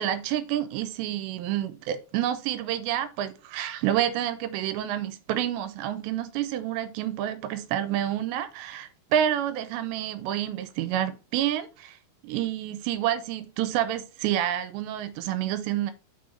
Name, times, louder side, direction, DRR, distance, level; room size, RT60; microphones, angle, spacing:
voice 1, 0.0-12.0 12.2-15.9, right 11 dB, 90° right, 2.9 m, -28 dB
6.4 x 4.0 x 5.4 m
omnidirectional pair, 5.1 m